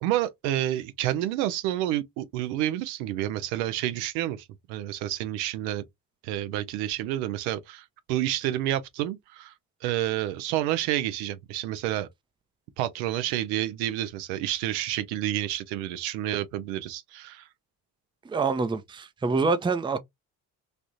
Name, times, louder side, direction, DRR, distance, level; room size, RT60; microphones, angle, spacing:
voice 1, 0.0-5.8 6.2-9.5 9.8-12.1 12.8-17.5, right 13 dB, 75° right, 0.7 m, -29 dB
voice 2, 18.2-20.0, right 4 dB, 10° right, 0.5 m, -26 dB
3.4 x 2.5 x 2.6 m
hypercardioid pair, 50°, 50 cm